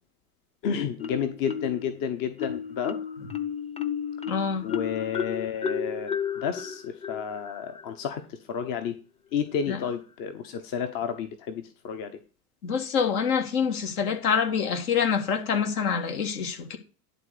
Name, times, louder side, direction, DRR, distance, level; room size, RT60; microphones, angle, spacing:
voice 1, 0.6-3.0 4.6-9.0 9.3-12.1, left 7 dB, 45° left, 1.2 m, -31 dB
Marimba xylophone, 1.0-1.9 2.4-7.9, left 7 dB, 15° left, 0.7 m, -33 dB
voice 2, 4.3-4.7 9.7-9.8 12.6-16.8, left 6 dB, 70° left, 1.9 m, -26 dB
11.0 x 3.9 x 6.6 m
hypercardioid pair, 80°, 47 cm